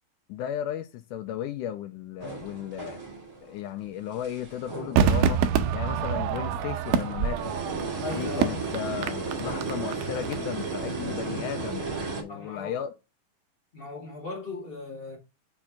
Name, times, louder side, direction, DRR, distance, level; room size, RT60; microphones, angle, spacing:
voice 1, 0.3-3.0 3.4-5.4 5.7-7.5 8.1-12.9, left 10 dB, 85° left, 1.8 m, -35 dB
sound 1, 2.2-3.4 3.8-5.5 5.8-5.9 6.7-12.2, right 4 dB, 30° right, 2.0 m, -34 dB
Crowd / Fireworks, 5.0-10.3 10.6-10.7, right 7 dB, 80° right, 1.9 m, -27 dB
voice 2, 8.0-8.6 12.3-12.8 13.7-15.2, left 3 dB, 30° left, 1.1 m, -37 dB
5.7 x 4.4 x 5.7 m
omnidirectional pair, 4.2 m